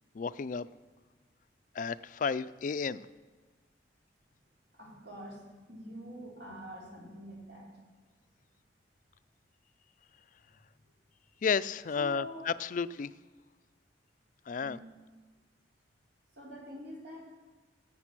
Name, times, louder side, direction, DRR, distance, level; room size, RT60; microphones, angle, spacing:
voice 1, 0.1-0.7 1.7-3.1 11.4-13.1 14.5-14.8, left 5 dB, 45° left, 16 dB, 0.4 m, -32 dB
voice 2, 4.7-7.7 12.0-12.4 14.6-14.8 16.4-17.3, equal, 65° right, -3 dB, 4.1 m, -45 dB
17.5 x 8.1 x 6.0 m, 1.4 s
head